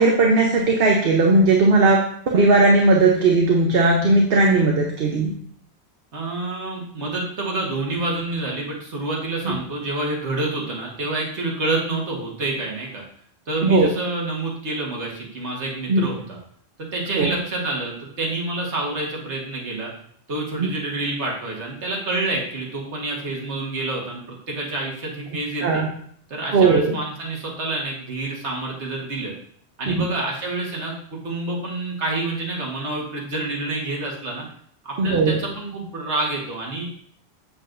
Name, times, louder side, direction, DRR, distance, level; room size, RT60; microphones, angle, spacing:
voice 1, 0.0-5.3 9.5-9.6 13.6-13.9 15.9-16.1 17.2-17.3 20.6-20.7 25.6-25.9 26.5-27.0 29.9-30.0 35.0-35.4, right 3 dB, 60° right, 0 dB, 1.0 m, -17 dB
voice 2, 6.1-13.0 13.5-16.4 16.8-19.9 20.3-24.2 24.5-25.8 26.3-29.3 29.8-34.5 34.8-36.9, right 2 dB, 85° right, -2 dB, 1.8 m, -28 dB
7.6 x 7.4 x 2.6 m, 0.62 s
omnidirectional pair, 1.1 m